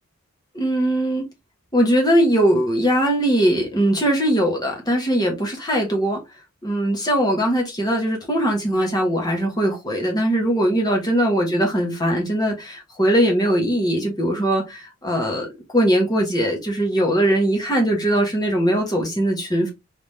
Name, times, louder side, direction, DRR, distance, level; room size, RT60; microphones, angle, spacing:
voice 1, 0.5-1.3 1.7-6.2 6.6-15.5 15.7-19.7, right 1 dB, 20° left, 1.4 m, -20 dB
3.7 x 3.4 x 3.4 m
head